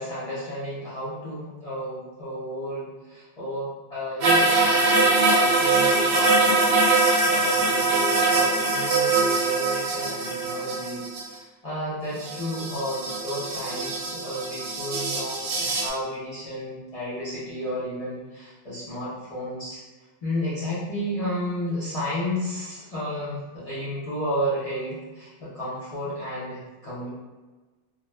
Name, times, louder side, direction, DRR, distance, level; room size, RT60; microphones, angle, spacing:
voice 1, 0.0-6.9 7.3-19.8 20.2-27.1, equal, 40° left, -10 dB, 0.7 m, -32 dB
sound 1, 4.2-11.3 12.2-15.9, right 3 dB, 70° right, 0.7 m, -22 dB
2.6 x 2.2 x 3.1 m, 1.2 s
omnidirectional pair, 1.1 m